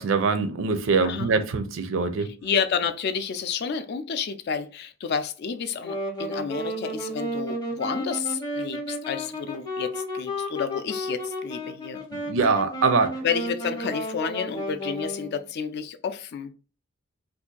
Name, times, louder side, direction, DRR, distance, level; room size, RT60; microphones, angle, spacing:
voice 1, 0.0-2.3 12.3-13.1, right 4 dB, 65° right, 0.5 m, -23 dB
voice 2, 2.2-12.0 13.2-16.5, left 6 dB, 55° left, 0.4 m, -30 dB
Wind instrument woodwind instrument, 5.7-15.4, equal, 20° left, 0.7 m, -33 dB
2.6 x 2.5 x 3.7 m
head